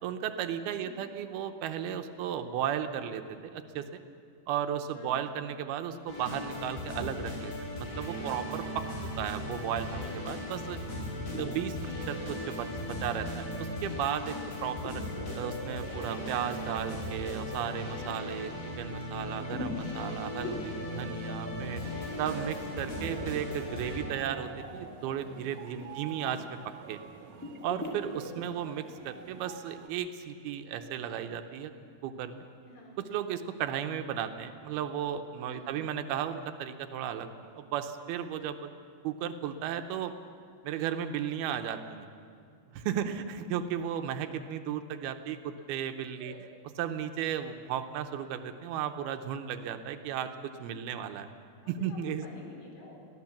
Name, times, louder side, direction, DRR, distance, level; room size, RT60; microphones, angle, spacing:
voice 1, 0.0-4.0 4.5-8.9 9.2-10.8 11.4-15.0 15.4-21.8 22.2-27.0 27.6-31.7 32.0-32.5 33.1-37.3 37.6-38.7 39.0-40.1 40.6-42.1 42.7-46.3 46.8-51.3 51.7-52.2, right 9 dB, 80° right, 8 dB, 2.7 m, -35 dB
voice 2, 4.9-5.2 10.4-10.9 19.1-19.5 25.7-26.0 32.6-32.9 35.4-35.8 42.9-43.2 46.1-46.4 51.9-53.1, left 1 dB, 85° left, -1 dB, 6.2 m, -51 dB
sound 1, 6.1-24.0, left 1 dB, 60° left, 6.0 m, -38 dB
sound 2, 11.3-11.6 12.1-12.5 12.8-13.2 13.5-13.6 14.8-17.7 19.4-19.9 20.4-21.7 23.1-24.7 27.4-28.3, left 1 dB, 5° left, 1.6 m, -41 dB
sound 3, 21.6-29.9, right 7 dB, 65° right, 2.2 m, -47 dB
23.0 x 16.0 x 7.3 m, 2.3 s
omnidirectional pair, 4.6 m